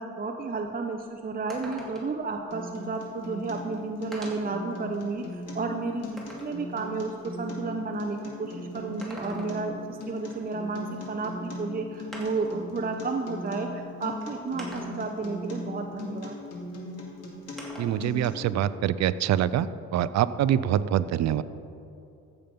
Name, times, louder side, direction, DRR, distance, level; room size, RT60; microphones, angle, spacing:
voice 1, 0.0-16.4, right 3 dB, 30° right, 3 dB, 0.7 m, -32 dB
sound 1, 0.6-0.7 1.0-1.1 1.5-2.2 3.3-3.4 4.1-4.6 5.2-6.6 8.8-9.8 11.3-11.4 12.1-12.6 13.6-13.7 14.6-15.2 17.6-18.1 18.4-19.5, equal, ahead, 2.6 m, -43 dB
Acoustic guitar, 2.5-18.5, left 2 dB, 55° left, 2.3 m, -39 dB
voice 2, 17.8-21.4, right 11 dB, 65° right, 15 dB, 0.5 m, -25 dB
14.5 x 7.0 x 5.3 m, 2.7 s
cardioid pair, 90°, 30 cm